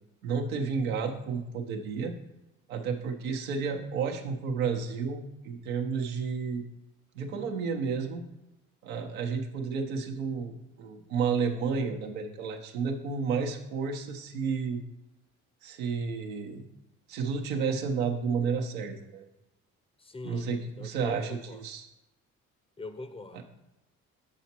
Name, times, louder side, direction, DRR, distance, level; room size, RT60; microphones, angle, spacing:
voice 1, 0.2-2.1 2.7-6.6 7.1-8.3 8.8-14.8 15.6-16.7 17.1-19.2 20.2-21.9 23.3-23.4, right 5 dB, 80° right, 3 dB, 0.9 m, -31 dB
voice 2, 20.0-21.6 22.8-23.4, left 2 dB, 15° left, 10 dB, 0.7 m, -42 dB
7.1 x 5.8 x 2.9 m, 0.97 s
hypercardioid pair, 50°, 41 cm